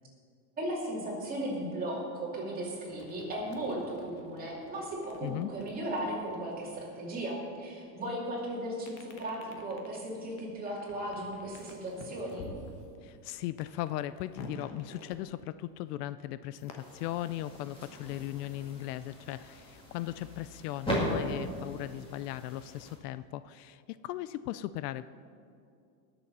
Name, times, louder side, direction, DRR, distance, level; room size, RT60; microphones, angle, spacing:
voice 1, 0.6-12.5, right 1 dB, 20° right, -4 dB, 2.7 m, -36 dB
sound 1, 2.9-7.8 8.8-15.9 16.5-18.9 19.2-20.5, left 3 dB, 35° left, 1.2 m, -51 dB
voice 2, 13.0-25.1, left 14 dB, 70° left, 15 dB, 0.5 m, -38 dB
sound 2, 16.8-23.0, equal, 10° left, 2.4 m, -38 dB
19.5 x 7.0 x 5.4 m, 2.5 s
supercardioid pair, 170°, 49 cm